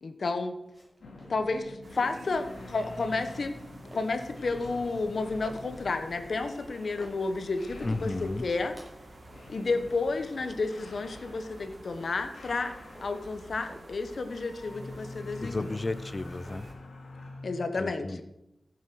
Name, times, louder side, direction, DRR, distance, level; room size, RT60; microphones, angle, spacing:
voice 1, 0.0-0.6 1.3-3.5 3.9-8.8 9.5-12.7 13.0-15.7 17.4-18.2, left 3 dB, 65° left, 8 dB, 1.2 m, -31 dB
sound 1, 0.6-17.3, equal, 15° right, 6.0 m, -53 dB
sound 2, 1.0-17.7, left 2 dB, 80° left, 2.4 m, -47 dB
sound 3, 1.8-16.7, right 2 dB, 50° right, 2.4 m, -51 dB
voice 2, 7.8-8.5 15.4-16.7 17.8-18.2, left 2 dB, 30° left, 13 dB, 0.7 m, -33 dB
15.0 x 7.6 x 6.2 m, 0.88 s
wide cardioid pair, 115°, 0 cm